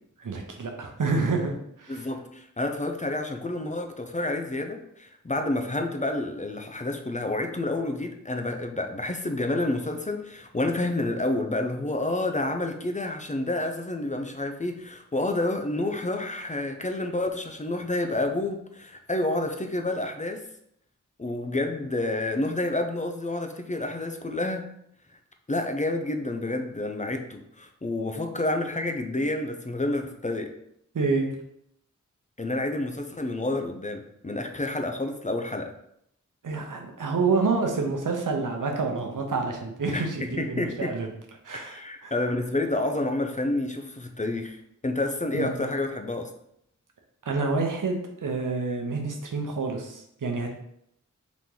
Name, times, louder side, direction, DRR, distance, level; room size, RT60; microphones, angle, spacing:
voice 1, 0.2-1.5 1.8-2.1 30.9-31.3 36.4-41.1 41.4-41.8 42.0-42.1 45.3-45.7 47.2-50.5, right 4 dB, 85° right, 2 dB, 0.8 m, -28 dB
voice 2, 1.9-20.4 21.2-24.6 25.5-30.5 32.4-35.7 39.9-40.9 41.5-44.6 44.8-46.3, left 2 dB, 25° left, 4 dB, 0.5 m, -29 dB
4.0 x 3.0 x 3.7 m, 0.74 s
wide cardioid pair, 80°, 31 cm